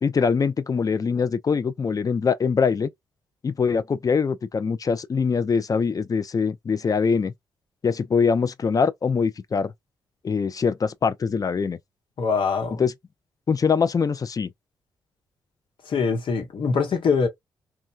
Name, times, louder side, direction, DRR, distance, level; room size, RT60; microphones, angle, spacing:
voice 1, 0.0-2.9 3.4-7.3 7.8-9.7 10.2-11.8 12.8-12.9 13.5-14.5, left 5 dB, 40° left, 0.5 m, -23 dB
voice 2, 12.2-12.8 15.9-17.3, left 5 dB, 65° left, 1.1 m, -23 dB
3.1 x 2.2 x 2.4 m
hypercardioid pair, 40°, 9 cm